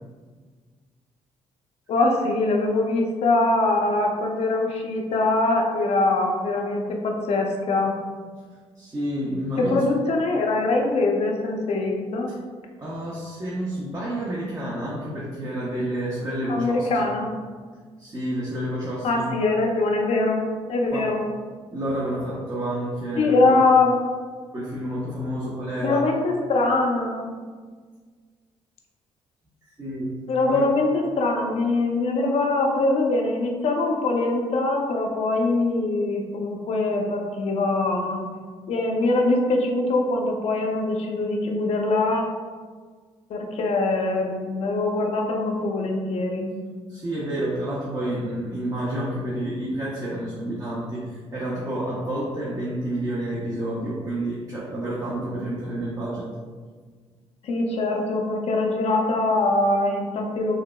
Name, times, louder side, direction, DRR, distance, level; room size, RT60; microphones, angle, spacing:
voice 1, 1.9-7.9 9.6-12.3 16.5-17.3 19.0-21.2 23.2-23.9 25.8-27.3 30.3-38.2 38.7-42.3 43.3-46.6 57.4-60.6, left 2 dB, 60° left, 1 dB, 0.5 m, -23 dB
voice 2, 8.8-9.8 12.8-17.1 18.0-19.2 20.9-21.1 21.7-23.6 24.5-26.0 29.6-30.2 30.5-30.6 46.9-56.3, right 1 dB, 30° right, -6 dB, 0.7 m, -29 dB
4.6 x 2.0 x 2.2 m, 1.5 s
cardioid pair, 80°, 12 cm